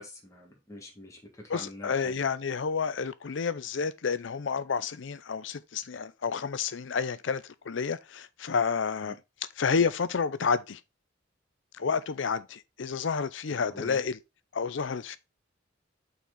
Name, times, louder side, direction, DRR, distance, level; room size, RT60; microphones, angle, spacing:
voice 1, 0.0-2.2 9.1-9.2 13.5-14.0, left 1 dB, 15° left, 1.7 m, -45 dB
voice 2, 1.5-9.2 9.6-10.8 11.8-14.2 14.5-15.2, left 5 dB, 70° left, 0.5 m, -30 dB
5.9 x 4.3 x 3.7 m
head